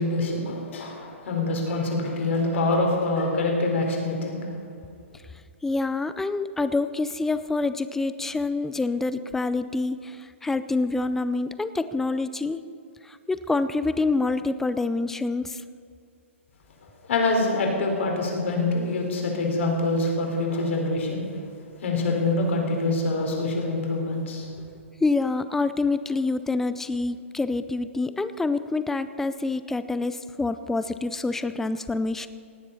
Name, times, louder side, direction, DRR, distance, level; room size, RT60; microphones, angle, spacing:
voice 1, 0.0-4.4 17.0-21.2 21.8-24.5, left 2 dB, 65° left, 0 dB, 4.1 m, -25 dB
voice 2, 5.6-12.6 13.1-15.6 25.0-32.3, left 3 dB, 5° left, 12 dB, 0.4 m, -26 dB
17.5 x 9.8 x 5.6 m, 2.3 s
hypercardioid pair, 145°, 7 cm